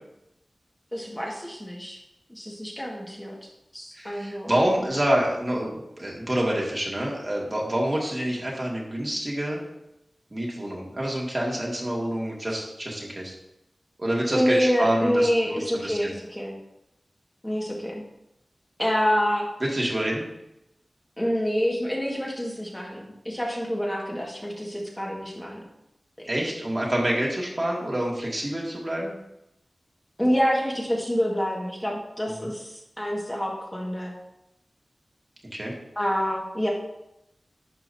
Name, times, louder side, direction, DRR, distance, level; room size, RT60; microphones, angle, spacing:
voice 1, 0.9-2.0 2.3-3.3 3.7-4.5 14.3-16.5 17.4-18.0 18.8-19.5 21.2-25.6 26.2-26.3 30.2-34.1 36.0-36.7, equal, 15° left, -3 dB, 1.9 m, -27 dB
voice 2, 3.9-9.6 10.3-13.3 14.0-16.1 19.6-20.2 26.3-29.1 32.3-32.5 35.5-35.7, right 1 dB, 35° right, -3 dB, 2.2 m, -27 dB
11.0 x 5.5 x 2.8 m, 0.84 s
wide cardioid pair, 55°, 0 cm